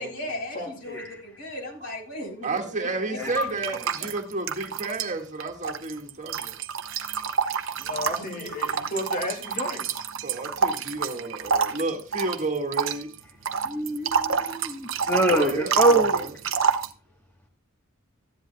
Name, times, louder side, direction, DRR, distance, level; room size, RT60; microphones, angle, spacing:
voice 1, 0.0-3.8 8.2-8.5, left 1 dB, 75° left, 3.9 m, -37 dB
voice 2, 0.5-1.0 7.8-10.0, left 1 dB, 40° left, 2.2 m, -34 dB
voice 3, 2.4-6.6 10.2-13.1 14.5-14.7 15.3-16.3, right 3 dB, 35° right, 1.8 m, -31 dB
sound 1, 3.2-5.1 5.4-16.9, right 6 dB, 65° right, 0.9 m, -28 dB
voice 4, 13.6-16.2, right 2 dB, 10° left, 1.3 m, -24 dB
14.0 x 10.5 x 2.3 m
head